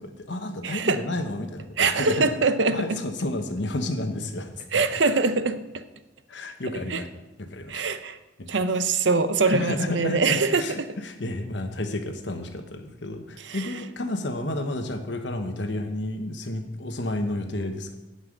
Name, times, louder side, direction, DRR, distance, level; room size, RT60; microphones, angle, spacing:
voice 1, 0.0-2.3 2.7-4.8 6.3-7.1 7.4-7.9 8.4-8.5 9.5-18.0, left 1 dB, 70° left, 6 dB, 1.1 m, -31 dB
voice 2, 0.6-1.0 1.8-3.0 4.7-5.8 6.9-7.0 7.7-8.2 8.5-10.9 13.4-13.7, right 4 dB, 75° right, 12 dB, 0.7 m, -23 dB
9.7 x 5.6 x 7.7 m, 1.0 s
head